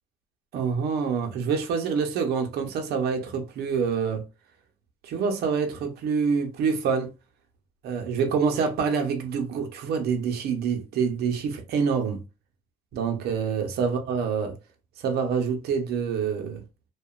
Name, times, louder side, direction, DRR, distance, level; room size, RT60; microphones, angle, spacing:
voice 1, 0.5-4.3 5.0-7.1 7.8-12.2 12.9-14.6 15.0-16.6, right 6 dB, 70° right, 0.8 m, -26 dB
2.8 x 2.4 x 2.3 m
cardioid pair, 110°, 17 cm